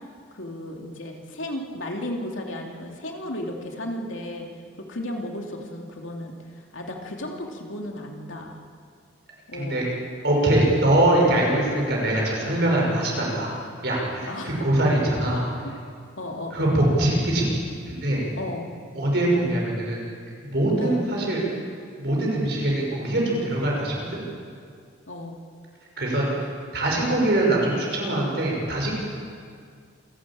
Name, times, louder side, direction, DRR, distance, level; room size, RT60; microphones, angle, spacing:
voice 1, 0.3-4.5 4.9-8.6 9.5-9.9 14.3-14.6 15.2-15.3 16.2-16.8 18.4-18.7 20.8-21.1 25.1-25.4, left 1 dB, 85° left, 1 dB, 2.8 m, -34 dB
voice 2, 10.2-13.5 13.8-15.4 16.5-17.6 17.9-18.2 18.9-20.0 20.4-21.4 22.0-24.2 26.0-26.3 26.7-28.9, right 1 dB, 55° right, -2 dB, 6.0 m, -22 dB
27.5 x 12.5 x 8.7 m, 2.2 s
head